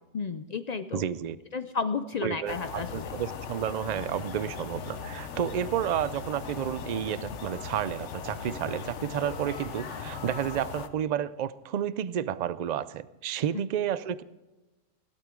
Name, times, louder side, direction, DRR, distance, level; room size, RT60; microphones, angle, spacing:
voice 1, 0.1-1.0 1.5-3.1, left 5 dB, 60° left, 11 dB, 0.4 m, -32 dB
voice 2, 0.9-1.4 2.2-14.2, right 10 dB, 60° right, 16 dB, 0.4 m, -31 dB
sound 1, 2.5-10.9, left 6 dB, 75° left, 1.2 m, -38 dB
17.0 x 12.5 x 3.7 m, 1.1 s
omnidirectional pair, 1.2 m